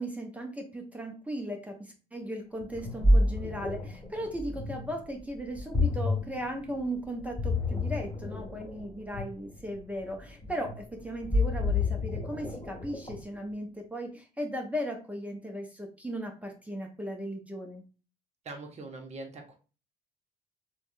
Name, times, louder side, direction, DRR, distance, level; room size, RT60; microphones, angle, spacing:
voice 1, 0.0-17.8, equal, 10° right, 2 dB, 0.6 m, -37 dB
Ocean, 2.6-13.4, left 2 dB, 15° left, 1.5 m, -30 dB
voice 2, 18.4-19.6, right 3 dB, 40° right, 4 dB, 0.8 m, -42 dB
3.3 x 2.2 x 2.6 m, 0.35 s
cardioid pair, 110°, 17 cm